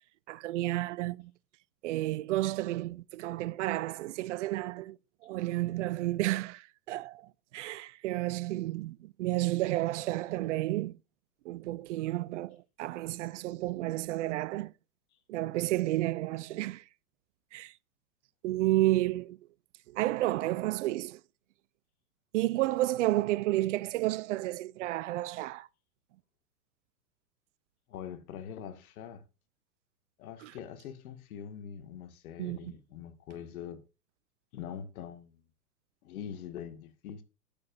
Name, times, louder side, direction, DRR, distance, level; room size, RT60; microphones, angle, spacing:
voice 1, 0.3-1.3 1.8-5.0 5.2-11.0 11.4-14.7 15.3-16.8 17.5-17.7 18.4-19.4 19.9-21.2 22.3-25.7 30.4-30.5 32.4-32.7, right 17 dB, 50° right, 0.5 m, -31 dB
voice 2, 27.9-29.3 30.2-33.8 34.5-35.4 36.0-37.2, left 8 dB, 60° left, 2.0 m, -43 dB
12.5 x 8.5 x 2.6 m
hypercardioid pair, 110°, 49 cm